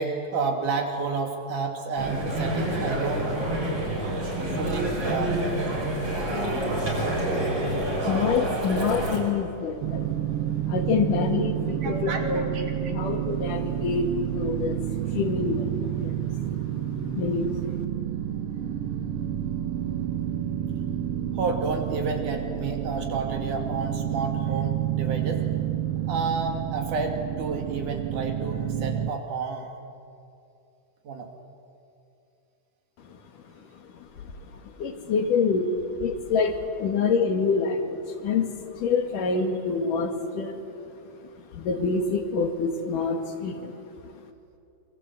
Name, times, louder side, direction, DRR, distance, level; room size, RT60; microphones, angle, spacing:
voice 1, 0.0-3.3 4.6-5.3 11.8-12.7 21.3-25.4 26.1-29.7 31.0-31.3, right 4 dB, 70° right, 3 dB, 4.1 m, -30 dB
sound 1, 2.0-9.2, right 1 dB, 45° right, 7.1 m, -27 dB
voice 2, 7.4-10.2 10.6-17.7 33.0-40.6 41.3-44.2, left 5 dB, 80° left, 5 dB, 3.7 m, -27 dB
sound 2, 9.8-29.1, right 11 dB, 85° right, 1.2 m, -29 dB
27.5 x 24.0 x 8.4 m, 2.6 s
omnidirectional pair, 3.7 m